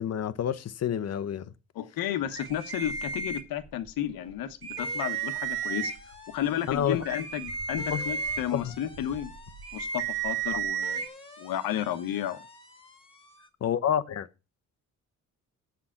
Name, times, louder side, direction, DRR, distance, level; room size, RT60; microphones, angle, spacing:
voice 1, 0.0-1.5 6.7-7.0 7.9-8.0 8.5-8.7 10.5-10.6 13.6-14.3, left 9 dB, 45° left, 0.8 m, -29 dB
voice 2, 1.7-5.9 6.3-9.3 9.7-11.0 11.4-12.4, left 11 dB, 80° left, 1.2 m, -32 dB
sound 1, 2.3-3.9 4.3-4.4 4.6-6.2 6.7-11.1, right 6 dB, 40° right, 1.0 m, -33 dB
sound 2, 2.6-3.3 3.6-13.5, left 3 dB, 15° left, 1.9 m, -51 dB
7.8 x 5.7 x 7.1 m
cardioid pair, 90°, 35 cm